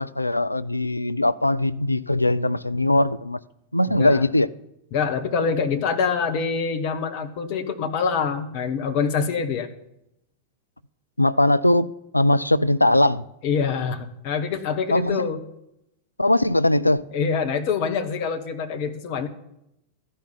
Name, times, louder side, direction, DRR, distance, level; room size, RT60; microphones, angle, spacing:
voice 1, 0.0-3.4 3.7-4.5 11.2-11.9 12.1-13.2 14.9-15.3 16.2-17.1, left 1 dB, 85° left, 0.4 m, -20 dB
voice 2, 3.9-4.2 4.9-9.7 13.4-15.4 17.1-19.3, left 6 dB, 45° left, 1.3 m, -25 dB
13.5 x 5.6 x 9.3 m
figure-of-eight pair, 90°, 0 cm